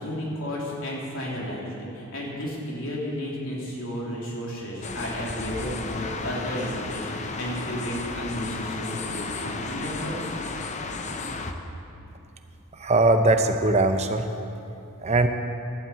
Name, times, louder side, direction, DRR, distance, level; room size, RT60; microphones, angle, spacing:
voice 1, 0.0-10.2, equal, 65° left, -4 dB, 3.1 m, -33 dB
sound 1, 4.8-11.5, left 3 dB, 30° left, 0.7 m, -33 dB
voice 2, 12.8-14.2 15.0-15.3, right 2 dB, 30° right, 7 dB, 0.6 m, -20 dB
11.5 x 9.1 x 8.4 m, 2.7 s
head